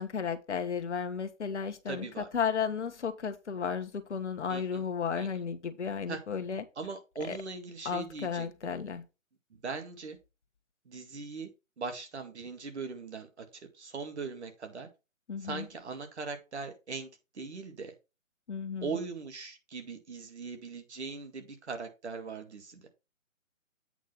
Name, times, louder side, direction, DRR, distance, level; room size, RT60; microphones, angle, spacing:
voice 1, 0.0-6.6 7.2-7.4 7.8-9.0 15.3-15.7 18.5-19.0, left 6 dB, 60° left, 1.3 m, -34 dB
voice 2, 1.9-2.3 4.5-4.8 5.2-5.3 6.1-6.2 6.8-8.7 9.6-10.2 10.9-11.5 11.8-14.9 15.4-17.1 17.3-17.9 18.8-22.9, right 4 dB, 55° right, 2.2 m, -40 dB
8.4 x 3.8 x 5.8 m
hypercardioid pair, 165°, 40 cm